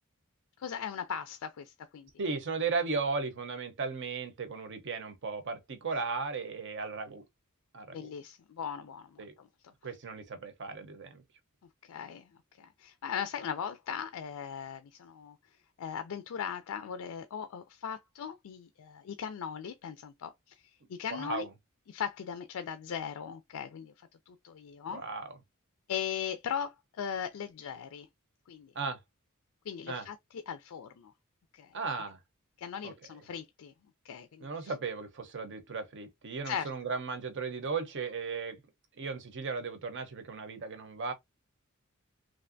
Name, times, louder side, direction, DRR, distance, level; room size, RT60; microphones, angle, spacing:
voice 1, 0.6-2.1 7.9-9.2 11.9-12.3 12.6-15.4 15.8-20.3 20.9-21.5 21.9-23.9 24.3-25.0 25.9-28.1 28.5-28.7 29.7-30.2 30.5-31.1 31.5-31.7 32.6-33.7 34.0-34.7 36.5-36.7, left 8 dB, 75° left, 0.4 m, -38 dB
voice 2, 2.2-7.2 7.7-8.1 9.2-9.3 9.8-11.2 21.1-21.5 24.9-25.4 28.7-29.0 29.9-30.1 31.7-32.2 32.8-33.3 34.4-38.6 39.0-41.1, right 4 dB, 60° right, 0.7 m, -36 dB
3.2 x 2.5 x 2.5 m
head